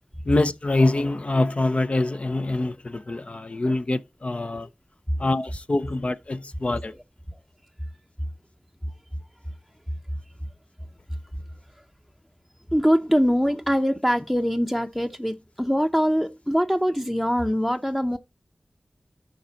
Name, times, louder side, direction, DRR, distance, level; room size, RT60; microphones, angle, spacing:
voice 1, 0.3-4.7 5.2-6.9, left 2 dB, 50° left, 0.6 m, -25 dB
voice 2, 12.7-18.2, equal, 5° left, 0.7 m, -23 dB
9.9 x 5.2 x 3.9 m
cardioid pair, 40°, 3 cm